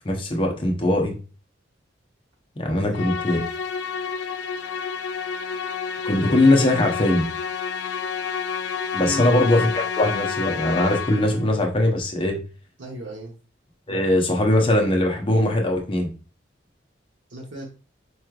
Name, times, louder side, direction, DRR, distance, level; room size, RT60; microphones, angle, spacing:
voice 1, 0.0-1.2 2.6-3.4 6.0-7.2 8.9-12.4 13.9-16.1, left 1 dB, 30° left, 2 dB, 0.7 m, -21 dB
voice 2, 2.7-3.2 9.0-9.3 12.8-13.3 17.3-17.6, right 1 dB, 80° right, -1 dB, 0.9 m, -35 dB
Musical instrument, 2.9-11.5, left 6 dB, 70° left, 0.4 m, -29 dB
4.6 x 3.1 x 2.3 m, 0.35 s
head